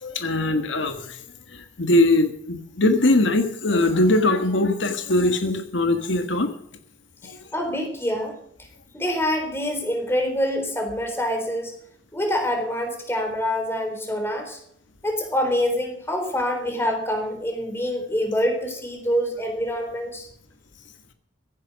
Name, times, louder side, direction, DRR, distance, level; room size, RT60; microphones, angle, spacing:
voice 1, 0.0-1.2 1.8-6.5 7.3-7.4, left 2 dB, 80° left, 7 dB, 1.6 m, -21 dB
voice 2, 7.5-8.3 8.9-11.7 12.1-14.6 15.0-20.3, equal, 15° left, 4 dB, 3.9 m, -25 dB
16.0 x 10.0 x 6.2 m, 0.69 s
head